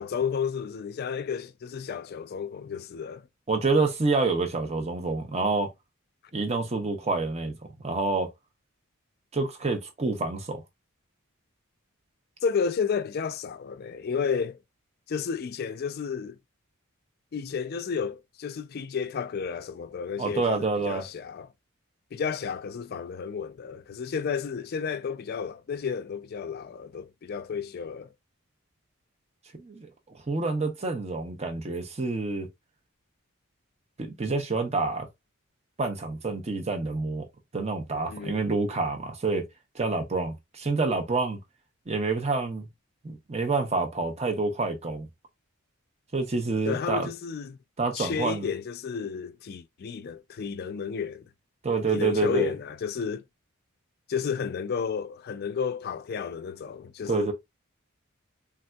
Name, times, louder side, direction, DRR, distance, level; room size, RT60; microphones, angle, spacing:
voice 1, 0.0-3.3 12.4-14.6 15.1-16.4 17.3-21.5 22.1-28.1 38.1-38.4 46.6-47.6 47.9-51.3 51.9-53.2 54.1-57.3, left 6 dB, 45° left, 0.3 m, -32 dB
voice 2, 3.5-5.7 6.3-7.5 7.8-8.3 9.3-10.6 20.2-21.0 29.6-29.9 30.3-32.5 34.0-35.1 35.8-37.3 37.5-39.4 39.7-41.4 41.9-42.7 43.0-45.1 46.1-47.1 47.8-48.5 51.6-52.5 57.1-57.3, right 3 dB, 30° right, 0.7 m, -27 dB
3.4 x 2.6 x 2.2 m
head